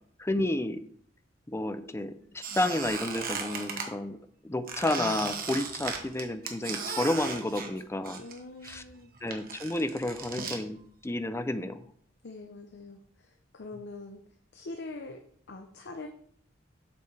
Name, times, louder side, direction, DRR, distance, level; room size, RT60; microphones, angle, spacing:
voice 1, 0.2-0.8 1.5-4.2 4.4-8.2 8.6-8.8 9.2-10.8 11.0-11.8, left 1 dB, 15° left, 10 dB, 0.5 m, -31 dB
Squeak, 2.4-3.9 4.7-8.4 8.6-10.6, right 5 dB, 45° right, 1.2 m, -36 dB
voice 2, 8.2-9.1 12.2-14.2 14.5-15.2 15.5-16.1, left 2 dB, 60° left, 5 dB, 0.7 m, -43 dB
8.1 x 6.9 x 3.3 m, 0.63 s
head